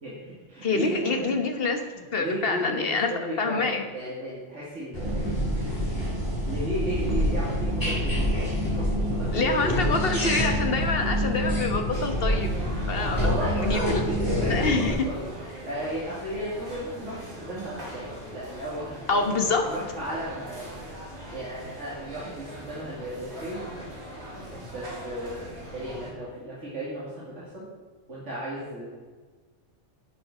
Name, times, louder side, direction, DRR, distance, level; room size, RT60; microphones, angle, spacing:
voice 1, 0.0-1.4 1.9-6.0 6.5-8.3 8.7-10.0 12.9-15.3 15.6-19.3 19.6-20.7 21.3-23.6 24.7-27.7 28.1-28.9, equal, 80° right, -8 dB, 2.9 m, -35 dB
voice 2, 0.6-3.1 3.4-3.8 9.3-12.5 12.9-14.1 14.5-15.1 19.1-19.8, left 3 dB, 55° left, 5 dB, 1.3 m, -26 dB
sound 1, 4.9-14.9, equal, 15° left, 4.3 m, -26 dB
sound 2, 11.9-26.1, equal, 65° right, 3.0 m, -41 dB
11.0 x 8.5 x 4.9 m, 1.4 s
omnidirectional pair, 1.2 m